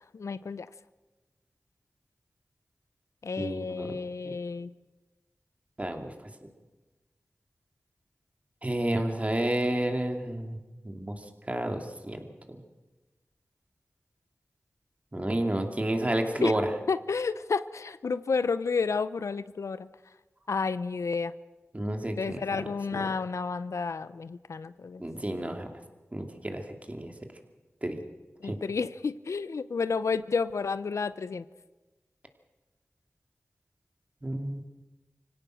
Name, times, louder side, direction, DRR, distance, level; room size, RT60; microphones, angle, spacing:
voice 1, 0.1-0.7 3.2-4.7 16.4-16.6 16.9-19.9 20.5-21.3 22.2-25.0 28.4-31.5, left 5 dB, 85° left, 15 dB, 0.6 m, -31 dB
voice 2, 3.4-3.9 4.2-4.3 5.8-6.3 8.6-12.6 15.1-16.7 21.7-22.6 22.9-23.1 25.0-25.7 26.1-27.1 27.8-28.0 28.4-28.6 34.2-34.6, right 1 dB, 30° right, 4 dB, 2.6 m, -31 dB
24.5 x 17.0 x 6.4 m, 1.2 s
cardioid pair, 45°, 5 cm